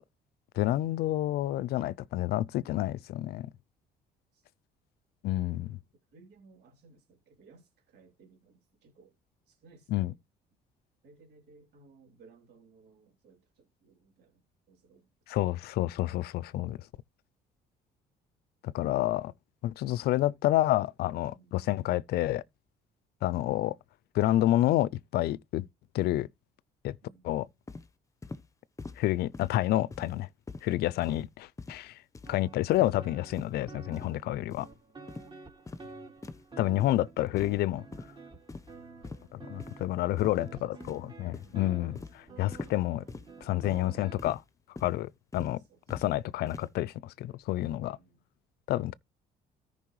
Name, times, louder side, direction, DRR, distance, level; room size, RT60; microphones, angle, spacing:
voice 1, 0.6-3.5 5.2-5.8 9.9-10.1 15.3-16.8 18.6-19.3 19.6-22.4 23.2-23.8 24.1-25.7 25.9-26.3 26.8-27.0 27.2-27.5 29.0-30.3 30.6-32.0 32.3-34.7 36.6-37.9 39.3-43.0 43.4-44.4 44.8-45.6 45.9-48.0 48.7-48.9, left 15 dB, 70° left, 0.4 m, -29 dB
voice 2, 6.1-9.1 9.5-10.2 11.0-15.4 21.2-21.5 27.0-27.2 34.6-34.7 35.1-35.4 40.0-41.0 41.4-41.6 42.0-42.4 45.6-45.8 47.8-48.2, right 4 dB, 75° right, 3.2 m, -60 dB
sound 1, 27.7-27.9 28.2-28.4 28.8-29.0 29.3-29.6 29.9-30.2 30.5-30.7 31.0-31.3 31.6-31.8 32.1-32.4 32.7-32.9 33.3-33.5 33.9-34.1 34.5-34.7 35.1-35.3 35.7-35.9 36.2-36.4 36.8-37.0 37.4-37.6 37.9-38.1 38.5-38.8 39.0-39.2 39.6-39.7 40.2-40.5 40.8-41.1 41.3-41.6 41.9-42.2 42.5-42.8 43.1-43.3 43.6-43.8 44.2-44.4 44.8-44.9 45.3-45.5 45.9-46.1 46.5-46.7, left 3 dB, 20° left, 0.8 m, -43 dB
sound 2, 32.2-44.2, right 4 dB, 30° right, 3.4 m, -50 dB
14.0 x 5.3 x 3.1 m
cardioid pair, 110°, 17 cm